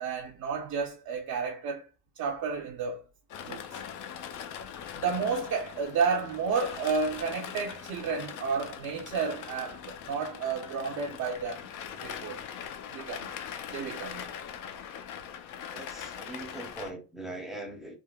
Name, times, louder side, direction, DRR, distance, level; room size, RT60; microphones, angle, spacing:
voice 1, 0.0-1.9 2.2-3.0 3.4-3.8 4.9-11.7 12.0-12.4 12.9-13.3 13.7-14.3, right 5 dB, 50° right, 0.5 m, -31 dB
sound 1, 3.3-16.9, left 8 dB, 55° left, 0.4 m, -41 dB
voice 2, 15.7-18.0, right 2 dB, ahead, 0.5 m, -41 dB
3.5 x 2.1 x 2.2 m
cardioid pair, 130°, 39 cm